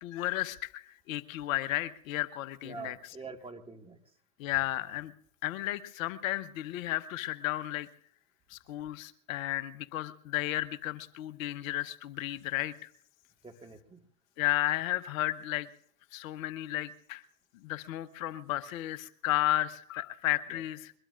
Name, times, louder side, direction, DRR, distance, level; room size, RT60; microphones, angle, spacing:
voice 1, 0.0-3.2 4.4-5.1 5.4-7.9 8.5-12.9 14.4-15.7 16.1-17.2 17.5-20.9, left 15 dB, 60° left, 13 dB, 1.0 m, -33 dB
voice 2, 2.6-4.0 13.4-14.0 20.5-20.6, right 4 dB, 10° right, 4 dB, 1.8 m, -45 dB
22.5 x 21.5 x 2.5 m, 0.62 s
hypercardioid pair, 95°, 45 cm